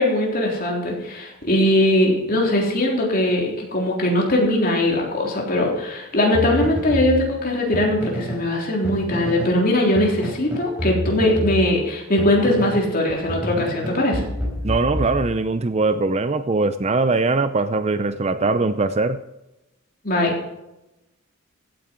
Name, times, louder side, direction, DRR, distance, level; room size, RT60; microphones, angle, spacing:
voice 1, 0.0-14.3 20.0-20.4, left 1 dB, 40° left, -1 dB, 3.6 m, -20 dB
sound 1, 6.3-8.5 8.8-9.6 9.9-12.9 13.3-15.7, left 1 dB, 5° right, 4.2 m, -29 dB
voice 2, 14.6-19.2, right 3 dB, 30° right, 12 dB, 0.5 m, -21 dB
15.5 x 9.0 x 4.5 m, 0.93 s
head